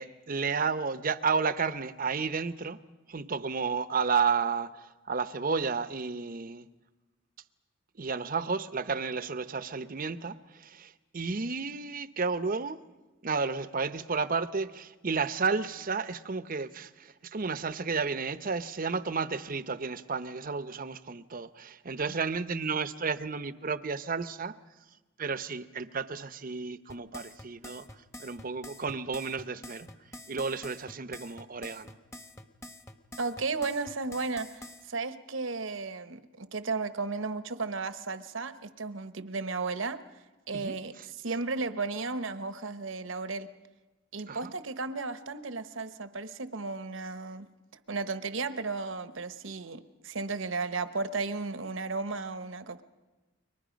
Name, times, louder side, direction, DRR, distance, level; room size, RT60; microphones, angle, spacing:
voice 1, 0.0-2.8 3.1-6.7 8.0-12.8 13.2-24.5 25.2-27.8 28.2-29.9 30.3-32.0 40.5-41.0 44.3-44.5, right 5 dB, 45° right, 13 dB, 0.8 m, -32 dB
sound 1, 26.9-34.8, left 1 dB, 15° left, 1.1 m, -46 dB
voice 2, 33.2-40.0 40.5-43.5 44.1-47.5 47.9-52.8, right 3 dB, 70° right, 11 dB, 1.0 m, -34 dB
30.0 x 23.5 x 5.2 m, 1.2 s
head